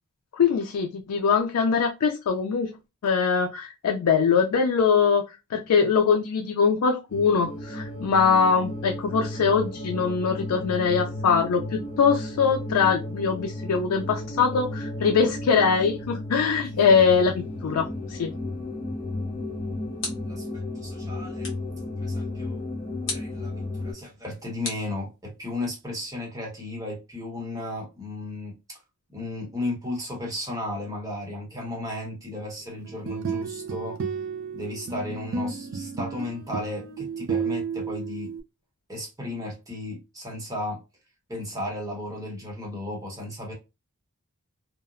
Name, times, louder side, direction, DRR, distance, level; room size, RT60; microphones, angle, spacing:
voice 1, 0.3-2.8 3.0-5.2 5.5-18.3, left 6 dB, 85° left, 0.4 m, -22 dB
sound 1, 7.1-23.9, left 1 dB, 25° left, 0.5 m, -34 dB
sound 2, 19.3-20.5 21.4-21.8 23.0-23.4 24.6-25.5, left 3 dB, 55° left, 1.0 m, -36 dB
voice 2, 20.3-21.5 22.0-22.6 23.1-28.8 29.1-34.0 34.5-38.3 38.9-40.8 41.3-43.5, left 1 dB, 15° right, 0.9 m, -34 dB
sound 3, 32.8-38.4, right 5 dB, 55° right, 0.4 m, -32 dB
2.8 x 2.0 x 2.4 m
head